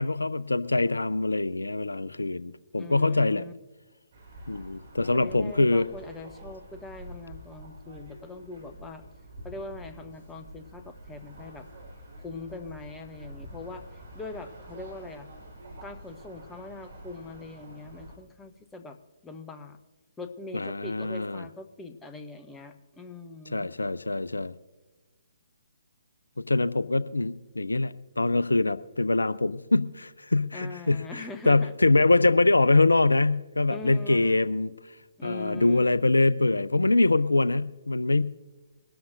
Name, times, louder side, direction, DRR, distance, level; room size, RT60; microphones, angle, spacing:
voice 1, 0.0-3.4 4.5-5.9 20.5-21.4 23.5-24.5 26.5-34.7 35.2-38.2, left 2 dB, 75° left, 16 dB, 0.4 m, -24 dB
voice 2, 2.8-3.5 5.1-9.0 9.4-11.7 12.2-15.3 15.8-19.0 19.2-19.8 20.2-23.7 30.5-31.7 32.0-32.1 33.7-34.5 35.2-35.9, left 3 dB, 10° left, 7 dB, 0.8 m, -42 dB
sound 1, 4.1-18.2, right 1 dB, 45° right, 4.5 m, -47 dB
23.0 x 13.0 x 2.6 m, 1.2 s
figure-of-eight pair, 130°, 0 cm